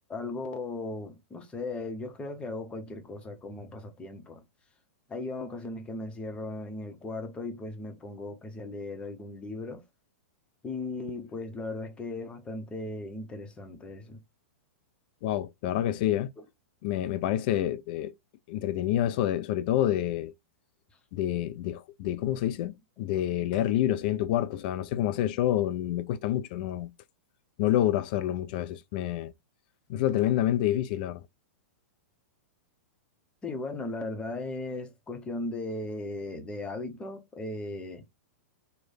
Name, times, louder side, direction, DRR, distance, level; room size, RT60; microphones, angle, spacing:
voice 1, 0.0-4.4 5.1-9.8 10.6-14.2 33.4-38.0, left 2 dB, 15° left, 0.8 m, -37 dB
voice 2, 15.2-16.3 16.8-18.1 18.5-20.3 21.1-26.9 27.6-29.3 29.9-31.2, left 12 dB, 40° left, 0.4 m, -28 dB
3.1 x 2.1 x 4.0 m
figure-of-eight pair, 100°, 7 cm